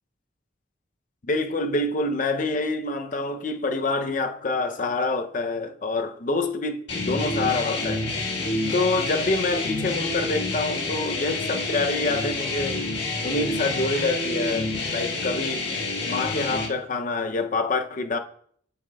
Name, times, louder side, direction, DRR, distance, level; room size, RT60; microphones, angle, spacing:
voice 1, 1.2-8.1 8.7-12.9 13.2-15.7 16.0-18.2, left 3 dB, 40° left, 0.5 m, -26 dB
sound 1, 6.9-16.7, left 2 dB, 60° left, 1.6 m, -28 dB
8.2 x 7.2 x 2.2 m
head